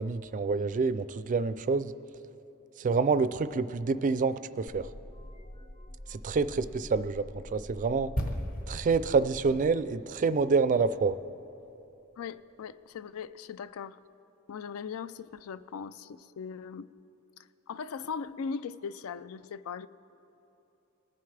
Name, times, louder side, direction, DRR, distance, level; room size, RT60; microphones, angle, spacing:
voice 1, 0.0-1.9 2.8-4.9 6.1-8.1 8.7-11.2, right 4 dB, 40° right, 14 dB, 0.3 m, -27 dB
sound 1, 4.7-9.7, equal, 25° left, 0.6 m, -46 dB
sound 2, 8.2-11.8 12.1-12.3, equal, 45° left, 1.2 m, -38 dB
voice 2, 12.2-14.0 14.5-16.9 17.7-19.9, left 6 dB, 85° left, 16 dB, 0.4 m, -39 dB
20.5 x 9.3 x 3.3 m, 3.0 s
head